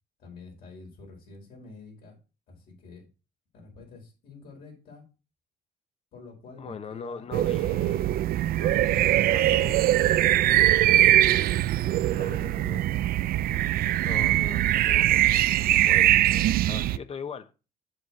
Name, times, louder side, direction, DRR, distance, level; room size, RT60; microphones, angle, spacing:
voice 1, 0.2-2.2 2.5-3.0 3.5-5.0 6.1-8.1 9.6-10.4 11.8-12.8, left 3 dB, 65° left, 4.8 m, -48 dB
voice 2, 6.6-8.1 8.6-9.8 10.2-10.4 12.1-12.8 14.0-15.5 15.8-17.5, left 5 dB, 35° left, 0.9 m, -41 dB
sound 1, 7.3-17.0, right 14 dB, 60° right, 0.4 m, -22 dB
7.8 x 6.3 x 4.2 m
cardioid pair, 110°, 17 cm